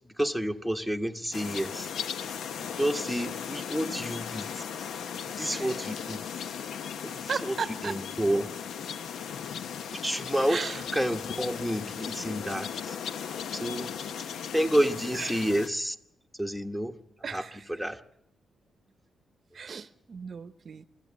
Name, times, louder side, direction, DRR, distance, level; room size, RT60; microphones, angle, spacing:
voice 1, 0.2-1.9 2.6-4.4 5.1-6.2 7.0-7.5 7.8-8.5 10.0-10.6 10.9-12.9 13.5-14.0 14.5-15.9 16.4-17.0 17.3-17.4 17.7-18.0, equal, 5° left, 1.2 m, -29 dB
sound 1, 1.3-15.7, left 7 dB, 90° left, 0.7 m, -37 dB
voice 2, 5.5-6.4 7.3-8.0 10.5-10.8 15.1-15.4 17.2-17.7 19.5-20.8, right 6 dB, 50° right, 0.7 m, -37 dB
25.5 x 13.5 x 8.5 m
cardioid pair, 110°, 0 cm